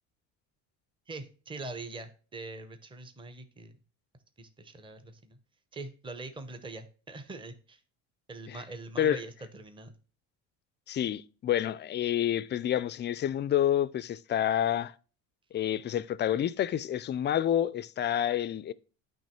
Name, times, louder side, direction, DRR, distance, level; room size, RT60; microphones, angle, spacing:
voice 1, 1.1-3.7 4.4-5.4 5.7-7.8 8.3-9.9, right 3 dB, 15° right, 0.8 m, -43 dB
voice 2, 10.9-14.9 15.5-18.7, left 10 dB, 30° left, 0.4 m, -28 dB
9.0 x 3.1 x 4.3 m
supercardioid pair, 90°, 36 cm